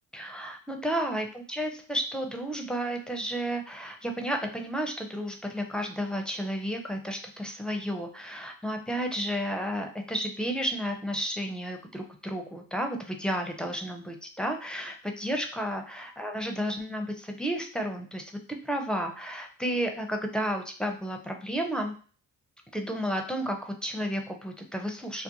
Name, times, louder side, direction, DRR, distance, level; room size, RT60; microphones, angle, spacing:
voice 1, 0.1-18.3 18.6-21.9 22.7-25.2, equal, ahead, 3 dB, 0.5 m, -32 dB
2.5 x 2.1 x 2.8 m, 0.40 s
supercardioid pair, 65°, 39 cm